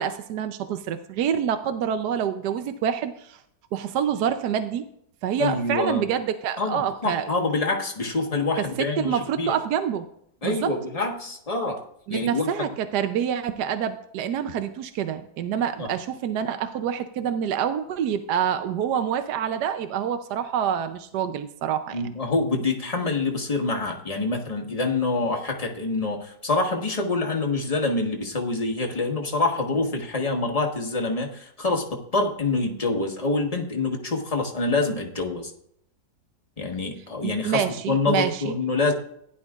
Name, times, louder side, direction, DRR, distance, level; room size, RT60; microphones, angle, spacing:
voice 1, 0.0-3.4 3.7-4.8 5.2-7.2 8.6-10.0 10.4-10.7 12.1-22.0 37.2-38.5, right 8 dB, 70° right, 9 dB, 1.1 m, -27 dB
voice 2, 5.4-6.0 6.6-9.5 10.4-11.8 12.1-12.5 15.8-15.9 21.9-35.5 36.6-38.9, left 3 dB, 20° left, 1 dB, 1.2 m, -26 dB
16.0 x 11.0 x 2.4 m, 0.71 s
omnidirectional pair, 2.1 m